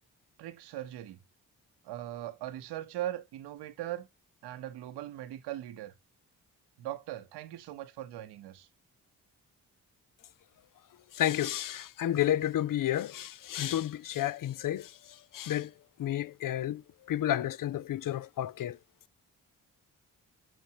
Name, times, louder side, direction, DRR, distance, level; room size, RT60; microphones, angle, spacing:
voice 1, 0.4-1.2 1.8-4.1 4.4-5.9 6.8-8.7, right 13 dB, 85° right, 0.9 m, -40 dB
voice 2, 11.1-15.7 16.0-18.8, left 12 dB, 55° left, 0.6 m, -31 dB
7.3 x 6.2 x 2.8 m
supercardioid pair, 45°, 39 cm